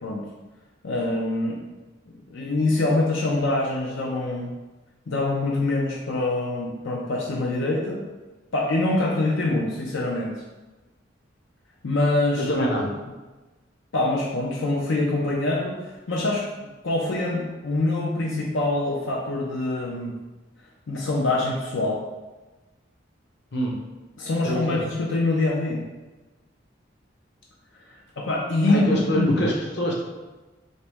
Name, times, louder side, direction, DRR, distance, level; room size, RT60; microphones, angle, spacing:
voice 1, 0.8-1.6 2.1-4.5 5.1-8.0 8.5-10.3 11.8-12.9 13.9-16.5 16.8-20.1 20.9-22.0 24.2-25.8 27.9-29.5, left 2 dB, 90° left, -2 dB, 0.6 m, -25 dB
voice 2, 12.4-12.8 23.5-23.8 24.4-24.8 28.7-30.0, equal, 60° left, -2 dB, 0.9 m, -25 dB
4.1 x 3.0 x 3.4 m, 1.2 s
head